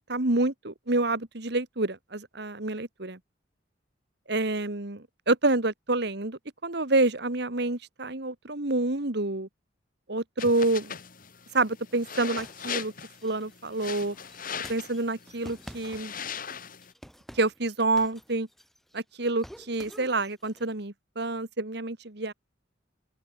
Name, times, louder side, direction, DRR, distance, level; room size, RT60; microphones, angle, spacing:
voice 1, 0.1-3.2 4.3-9.5 10.1-10.9 11.5-12.9 13.2-14.2 14.7-16.1 17.3-18.5 18.9-22.3, right 2 dB, 60° right, 1.9 m, -28 dB
sound 1, 10.4-16.9, left 7 dB, 45° left, 2.4 m, -39 dB
sound 2, 11.9-16.5 16.8-19.0 19.2-20.7, equal, ahead, 5.8 m, -49 dB
open air
head